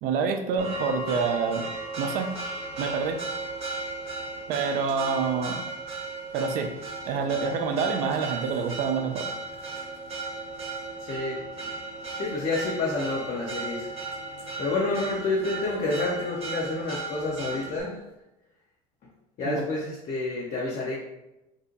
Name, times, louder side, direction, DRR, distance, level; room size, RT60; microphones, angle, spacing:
voice 1, 0.0-1.7 2.0-2.3 2.8-3.2 4.5-5.6 6.3-6.7 7.1-9.3 19.4-19.6, right 5 dB, 50° right, 6 dB, 0.4 m, -27 dB
Church bell, 0.6-17.8, right 3 dB, 35° right, 0.9 m, -36 dB
voice 2, 11.0-11.4 12.2-13.9 14.6-18.0 19.4-21.0, left 2 dB, 40° left, -4 dB, 0.6 m, -29 dB
2.6 x 2.1 x 2.7 m, 0.95 s
hypercardioid pair, 70°, 19 cm